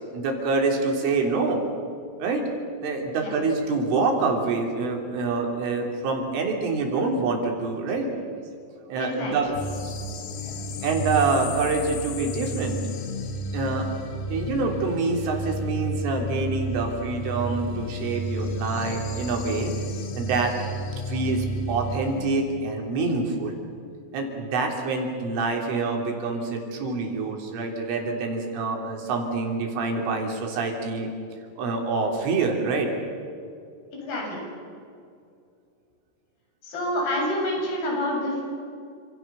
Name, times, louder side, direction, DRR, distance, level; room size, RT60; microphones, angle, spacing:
voice 1, 0.1-1.6 2.2-2.5 2.8-8.3 8.9-9.5 9.8-9.9 10.4-13.0 13.5-13.9 14.3-19.7 20.2-20.5 20.9-23.6 24.1-31.1 31.6-32.9, right 3 dB, 70° right, 1 dB, 5.9 m, -26 dB
voice 2, 9.0-9.4 33.9-34.4 36.6-38.4, left 1 dB, 45° left, -1 dB, 9.4 m, -27 dB
sound 1, 9.5-22.3, equal, 70° left, 3.8 m, -32 dB
29.5 x 27.5 x 7.0 m, 2.4 s
omnidirectional pair, 6.0 m